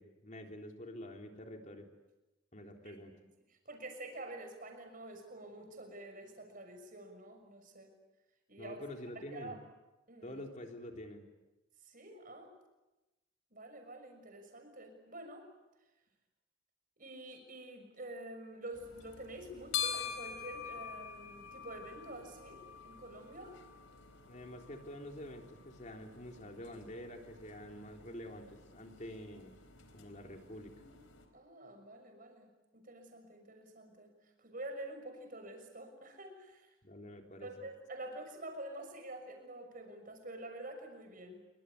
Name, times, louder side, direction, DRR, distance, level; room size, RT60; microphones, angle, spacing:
voice 1, 0.0-1.9 2.5-3.1 8.6-9.6 10.2-11.3 24.3-29.5 29.9-30.7 36.8-37.5, left 1 dB, 35° left, 3 dB, 3.6 m, -47 dB
voice 2, 3.5-7.9 8.5-8.8 9.1-9.6 10.1-10.4 11.8-12.5 13.5-15.5 17.0-23.6 31.3-36.7 37.4-41.4, right 1 dB, 40° right, 5 dB, 6.3 m, -48 dB
sound 1, 18.7-31.3, left 8 dB, 70° left, 4.2 m, -46 dB
27.5 x 24.5 x 8.4 m, 1.0 s
head